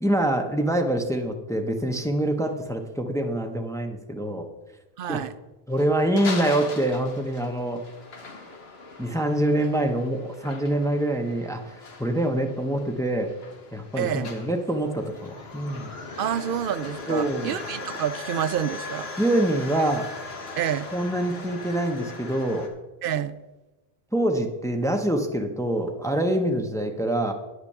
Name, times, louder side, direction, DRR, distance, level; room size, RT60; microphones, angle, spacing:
voice 1, 0.0-4.5 5.1-5.2 5.7-7.8 9.0-13.3 13.7-15.9 17.1-17.6 19.2-20.1 20.9-22.7 24.1-27.3, right 1 dB, 5° left, 0.8 m, -25 dB
voice 2, 5.0-5.3 14.0-14.3 16.2-19.1 20.6-20.9 23.0-23.3, right 9 dB, 65° right, 0.7 m, -28 dB
sound 1, 5.7-22.7, left 3 dB, 75° left, 1.5 m, -39 dB
9.6 x 5.9 x 6.7 m
omnidirectional pair, 1.0 m